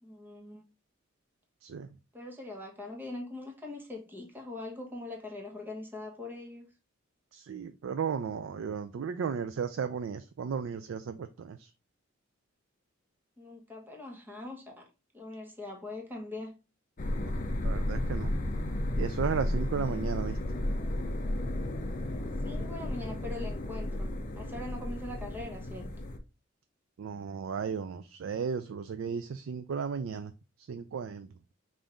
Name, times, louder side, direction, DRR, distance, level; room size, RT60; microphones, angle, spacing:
voice 1, 0.0-0.6 2.1-6.7 13.4-14.8 15.1-16.5 22.1-25.9, left 2 dB, 10° right, 1.2 m, -42 dB
voice 2, 7.3-11.7 17.6-18.3 19.0-20.4 27.0-30.3 30.7-31.3, right 6 dB, 70° right, 0.4 m, -34 dB
sound 1, 17.0-26.2, left 1 dB, 40° left, 0.6 m, -33 dB
5.4 x 2.6 x 3.4 m
head